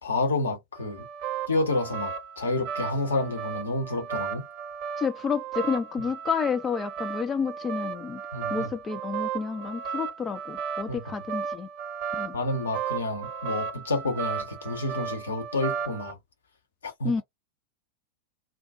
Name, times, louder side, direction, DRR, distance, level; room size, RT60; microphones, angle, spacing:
voice 1, 0.0-1.1 1.5-4.5 8.3-8.7 10.9-11.2 12.3-16.2 16.8-17.1, left 2 dB, 70° left, 0.9 m, -29 dB
sound 1, 0.8-16.1, right 7 dB, 45° right, 0.6 m, -35 dB
voice 2, 5.0-8.2 8.5-11.7 12.1-12.3 17.0-17.2, left 6 dB, 20° left, 0.3 m, -30 dB
2.4 x 2.2 x 2.4 m
figure-of-eight pair, 90°, 0 cm